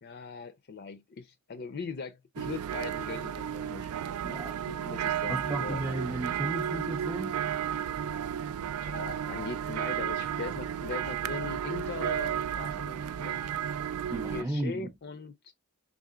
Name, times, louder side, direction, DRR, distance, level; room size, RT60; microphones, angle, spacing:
voice 1, 0.0-3.9 4.7-5.8 8.8-13.4 14.1-15.5, left 5 dB, 50° left, 0.4 m, -40 dB
sound 1, 2.4-14.4, right 9 dB, 90° right, 0.4 m, -33 dB
voice 2, 4.2-4.6 5.3-7.4 10.1-10.2 14.1-14.9, right 1 dB, 10° right, 0.4 m, -35 dB
3.7 x 3.6 x 2.2 m
head